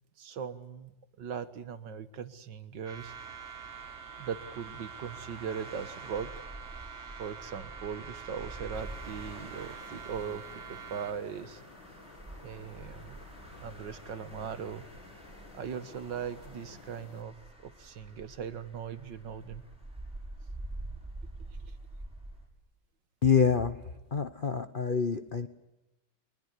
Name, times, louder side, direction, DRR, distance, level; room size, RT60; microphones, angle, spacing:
voice 1, 0.2-0.9 1.2-3.1 4.2-6.3 7.2-10.4 10.7-11.6 12.4-13.2 13.6-14.8 15.5-17.3 17.6-19.6, right 7 dB, 70° right, 12 dB, 2.0 m, -39 dB
sound 1, 2.9-11.1, right 8 dB, 35° right, 1.3 m, -46 dB
sound 2, 3.1-22.5, right 1 dB, 5° right, 6.9 m, -47 dB
sound 3, 8.7-17.2, left 4 dB, 75° left, 3.0 m, -54 dB
voice 2, 23.2-23.8 24.1-25.5, left 6 dB, 35° left, 10 dB, 1.0 m, -26 dB
23.5 x 21.0 x 9.8 m, 0.96 s
omnidirectional pair, 2.1 m